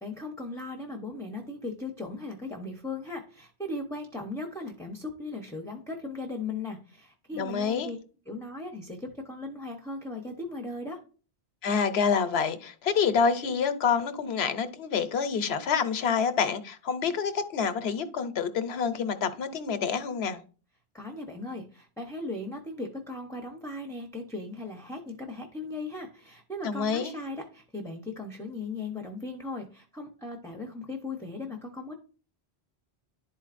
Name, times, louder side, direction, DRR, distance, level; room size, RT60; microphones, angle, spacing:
voice 1, 0.0-8.0 8.3-11.0 20.9-31.9, left 2 dB, 5° left, 0.6 m, -38 dB
voice 2, 7.4-7.9 11.6-20.4 26.6-27.1, left 6 dB, 85° left, 1.0 m, -27 dB
11.0 x 4.5 x 2.5 m
omnidirectional pair, 1.0 m